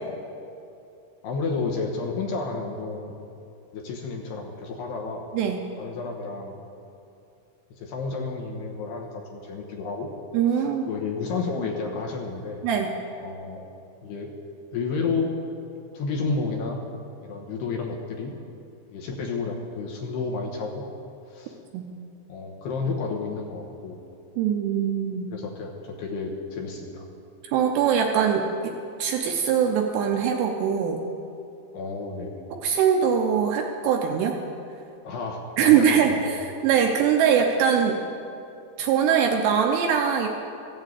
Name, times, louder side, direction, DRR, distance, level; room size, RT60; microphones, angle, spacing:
voice 1, 1.2-3.2 3.7-5.3 5.8-6.6 7.7-10.1 10.5-12.6 13.2-13.6 14.0-14.3 14.7-15.3 15.9-16.8 17.2-18.3 18.9-20.9 21.3-21.6 22.3-24.0 25.3-27.1 31.7-32.4 35.0-36.2, left 4 dB, 70° left, 0 dB, 2.9 m, -31 dB
voice 2, 10.3-10.9 12.6-12.9 21.7-21.9 24.4-25.3 27.4-28.7 29.0-31.0 32.5-34.4 35.6-38.0 38.8-40.3, right 7 dB, 80° right, 3 dB, 2.6 m, -22 dB
15.0 x 9.1 x 8.2 m, 2.7 s
omnidirectional pair, 5.5 m